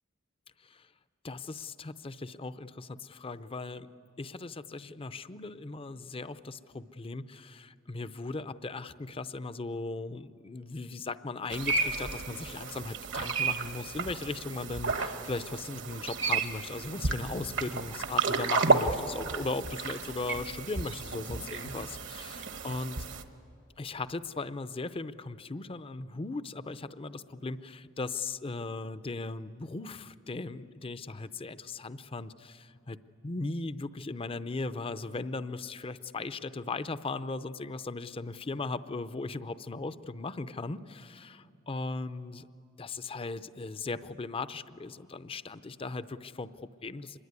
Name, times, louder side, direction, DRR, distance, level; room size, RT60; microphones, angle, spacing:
voice 1, 1.2-3.9 4.2-23.1 23.8-33.0 33.2-42.5 42.8-47.2, left 3 dB, 25° left, 14 dB, 0.6 m, -38 dB
sound 1, 11.5-23.2, right 4 dB, 65° right, 1.3 m, -32 dB
25.5 x 21.5 x 9.6 m, 2.6 s
head